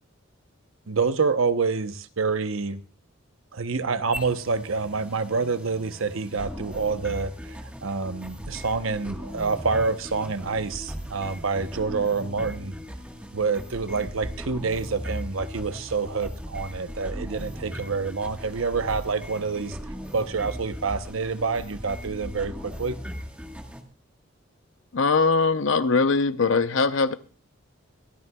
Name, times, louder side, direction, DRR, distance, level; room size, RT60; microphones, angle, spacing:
voice 1, 0.9-2.8 3.5-12.8 13.3-19.8 20.1-23.0, right 4 dB, 75° right, 0.8 m, -27 dB
sound 1, 4.1-23.8, equal, 5° right, 1.4 m, -38 dB
voice 2, 24.9-27.1, left 4 dB, 70° left, 0.7 m, -21 dB
23.5 x 12.5 x 2.3 m
head